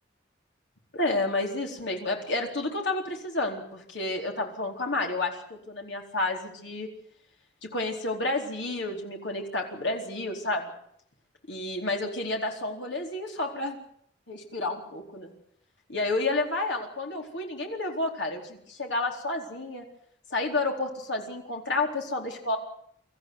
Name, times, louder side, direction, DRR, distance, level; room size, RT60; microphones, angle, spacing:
voice 1, 0.9-6.9 7.6-10.7 11.5-13.8 14.3-15.3 15.9-19.8 20.3-22.6, left 2 dB, 70° left, 2 dB, 4.1 m, -30 dB
24.5 x 14.5 x 9.7 m, 0.69 s
head